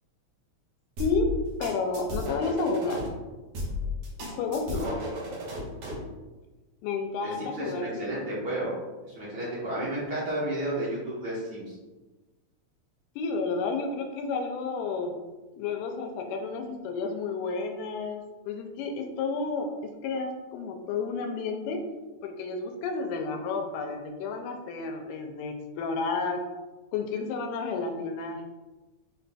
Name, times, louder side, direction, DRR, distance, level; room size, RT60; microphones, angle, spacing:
voice 1, 1.0-1.3 1.6-3.1 4.3-4.9 6.8-8.1 13.2-15.2 15.6-21.8 22.2-26.4 26.9-28.4, left 4 dB, 90° left, 4 dB, 2.1 m, -31 dB
sound 1, 1.0-3.1 3.5-6.1, left 2 dB, 60° right, 2.0 m, -34 dB
voice 2, 7.2-8.7 9.0-11.8, right 1 dB, 80° right, -9 dB, 0.9 m, -32 dB
5.4 x 4.0 x 2.2 m, 1.2 s
omnidirectional pair, 3.5 m